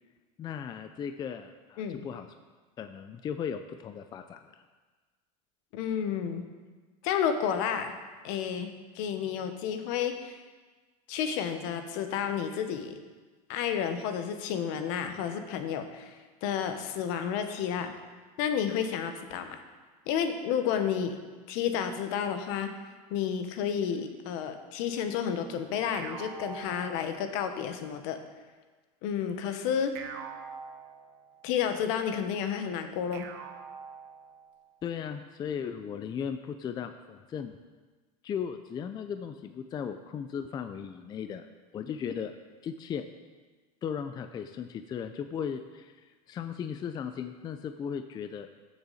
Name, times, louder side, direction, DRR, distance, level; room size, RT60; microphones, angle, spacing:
voice 1, 0.4-2.3 2.8-4.4 34.8-37.6 38.2-41.5 41.7-42.3 42.6-43.0 43.8-48.5, left 7 dB, 25° left, 8 dB, 0.4 m, -36 dB
voice 2, 5.7-6.4 7.0-7.9 8.2-10.3 11.1-13.0 13.5-17.9 18.4-19.6 20.1-21.2 21.5-22.7 23.1-28.2 29.0-30.0 31.4-33.3, left 8 dB, 60° left, 7 dB, 1.1 m, -31 dB
sound 1, 25.9-27.6 29.9-31.5 33.1-34.6, right 6 dB, 65° right, 1.1 m, -44 dB
13.5 x 7.0 x 4.1 m, 1.4 s
supercardioid pair, 140°, 18 cm